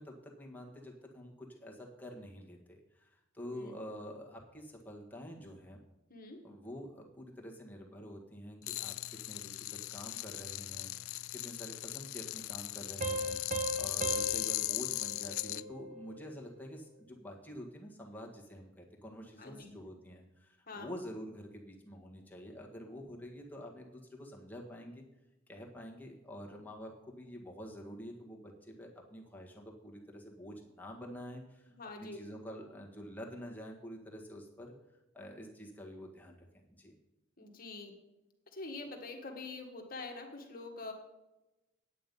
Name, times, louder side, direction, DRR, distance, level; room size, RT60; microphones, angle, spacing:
voice 1, 0.0-5.8 6.4-9.0 9.3-25.0 25.5-31.7 32.0-34.7 35.1-36.9, equal, 10° left, -1 dB, 1.6 m, -48 dB
voice 2, 6.1-6.4 19.4-19.8 20.7-20.9 31.7-32.2 37.4-38.0 38.5-40.9, left 3 dB, 45° left, 3 dB, 1.6 m, -45 dB
sound 1, 8.6-15.6, left 18 dB, 75° left, 0.3 m, -38 dB
sound 2, 13.0-16.3, right 2 dB, 40° right, 0.8 m, -39 dB
9.3 x 9.1 x 5.4 m, 0.98 s
head